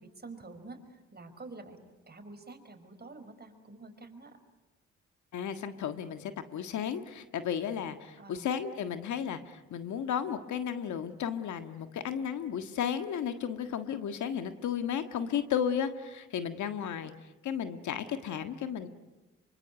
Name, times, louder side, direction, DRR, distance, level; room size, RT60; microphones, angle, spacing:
voice 1, 0.0-4.4 8.2-8.5 16.8-17.1, right 3 dB, 35° right, 6 dB, 5.2 m, -48 dB
voice 2, 5.3-17.1 17.4-18.9, left 8 dB, 75° left, 9 dB, 1.7 m, -34 dB
25.5 x 24.5 x 9.5 m, 1.1 s
supercardioid pair, 55°, 30 cm